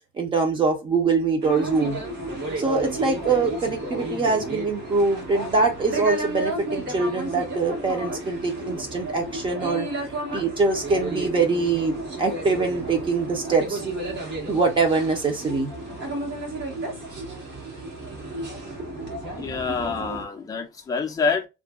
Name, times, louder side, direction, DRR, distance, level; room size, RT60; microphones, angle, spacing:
voice 1, 0.1-2.0 2.6-9.9 10.3-13.8 14.5-15.7, right 4 dB, 25° right, 0.7 m, -23 dB
sound 1, 1.4-20.2, right 2 dB, 55° right, 1.2 m, -32 dB
voice 2, 19.4-21.5, left 5 dB, 15° left, 0.4 m, -26 dB
2.5 x 2.2 x 3.4 m
cardioid pair, 175°, 20 cm